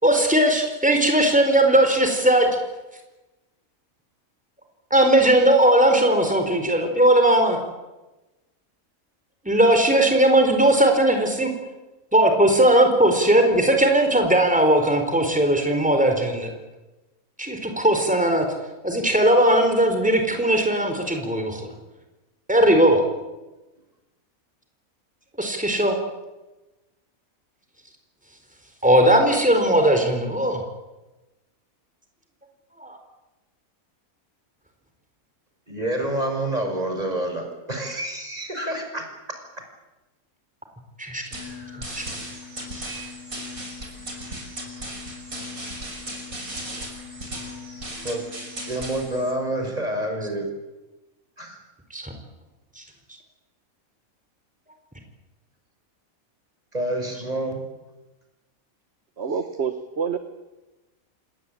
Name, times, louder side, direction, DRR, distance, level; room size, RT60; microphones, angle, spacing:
voice 1, 0.0-2.5 4.9-7.6 9.4-11.5 12.1-16.5 17.4-18.5 18.8-21.7 22.5-23.0 25.4-26.0 28.8-30.6 32.8-33.0 41.0-41.2 41.9-42.2 42.7-42.9 51.9-52.1 52.8-52.9, right 1 dB, 5° right, 4 dB, 4.5 m, -18 dB
voice 2, 35.7-39.1 48.0-48.3 48.6-50.5 51.4-51.6 56.7-57.6, right 1 dB, 25° right, 4 dB, 5.9 m, -28 dB
sound 1, 41.3-49.3, equal, 75° right, 6.4 m, -36 dB
voice 3, 59.2-60.2, right 6 dB, 50° right, 8 dB, 1.6 m, -27 dB
28.0 x 20.0 x 8.9 m, 1.1 s
omnidirectional pair, 1.5 m